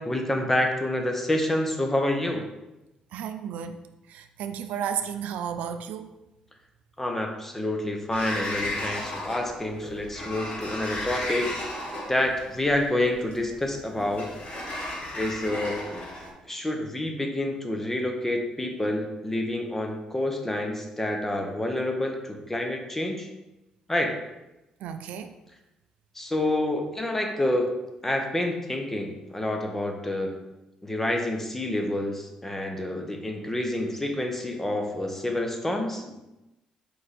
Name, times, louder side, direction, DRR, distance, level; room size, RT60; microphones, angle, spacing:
voice 1, 0.0-2.5 7.0-11.6 12.1-14.3 15.1-23.3 23.9-24.2 26.1-27.7 28.0-30.4 30.8-36.2, left 1 dB, 15° left, 3 dB, 0.7 m, -28 dB
voice 2, 3.1-3.8 4.1-6.1 24.8-25.3, right 8 dB, 80° right, 8 dB, 0.3 m, -33 dB
Sliding door, 8.1-16.3, left 1 dB, 60° left, 1.2 m, -35 dB
4.5 x 2.5 x 4.1 m, 0.98 s
cardioid pair, 85°, 2 cm